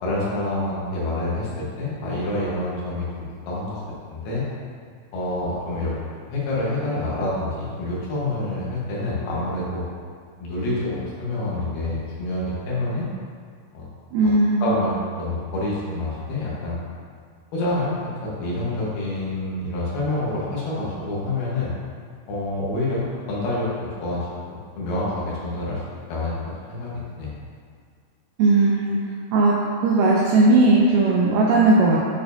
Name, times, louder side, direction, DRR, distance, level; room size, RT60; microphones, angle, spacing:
voice 1, 0.0-3.1 3.5-3.8 4.1-4.4 5.1-5.9 6.2-9.8 10.4-13.1 13.7-13.9 14.6-16.8 17.5-17.9 18.2-21.7 22.3-23.7 24.0-24.2 24.5-25.8 26.1-26.3 26.7-26.9 27.2-27.3, left 2 dB, 80° left, -7 dB, 3.3 m, -27 dB
voice 2, 14.1-14.7 28.4-29.0 29.3-29.6 29.8-32.0, right 2 dB, 80° right, -4 dB, 1.9 m, -17 dB
8.9 x 4.4 x 2.7 m, 2.1 s
omnidirectional pair, 4.4 m